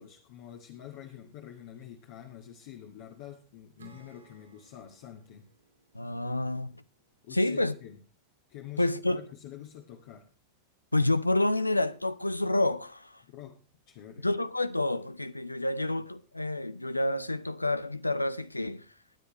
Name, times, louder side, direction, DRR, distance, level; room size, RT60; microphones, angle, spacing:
voice 1, 0.0-5.5 7.2-8.0 8.5-10.3 13.3-13.6 13.9-14.3, left 10 dB, 50° left, 1.6 m, -47 dB
Acoustic guitar / Strum, 3.8-7.2, right 4 dB, 75° right, 4.4 m, -59 dB
voice 2, 5.9-6.7 7.3-7.7 8.8-9.2 10.9-13.2 14.2-18.9, left 2 dB, 85° left, 0.6 m, -28 dB
20.0 x 10.0 x 3.0 m
figure-of-eight pair, 90°, 0 cm